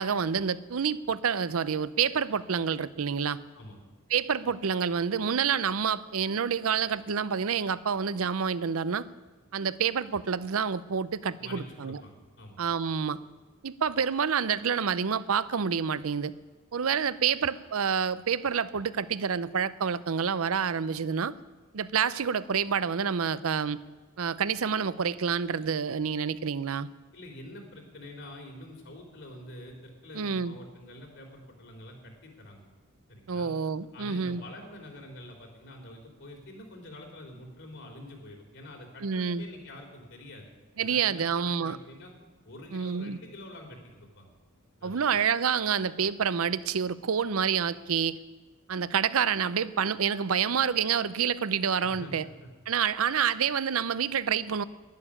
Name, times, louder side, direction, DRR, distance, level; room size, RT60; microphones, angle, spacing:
voice 1, 0.0-3.4 4.1-9.1 9.5-12.0 12.6-13.2 13.6-16.3 16.7-21.3 21.7-23.8 24.2-26.9 30.1-30.6 33.3-34.4 39.0-39.4 40.8-41.8 42.7-43.2 44.8-48.2 48.7-52.3 52.7-54.6, right 7 dB, 70° right, 17 dB, 0.6 m, -28 dB
voice 2, 11.4-12.6 27.1-32.7 33.1-33.5 33.9-40.4 40.8-42.1 42.4-44.3 44.8-45.1 51.8-52.5, left 1 dB, 60° left, 2 dB, 3.5 m, -46 dB
11.5 x 11.0 x 9.9 m, 1.3 s
head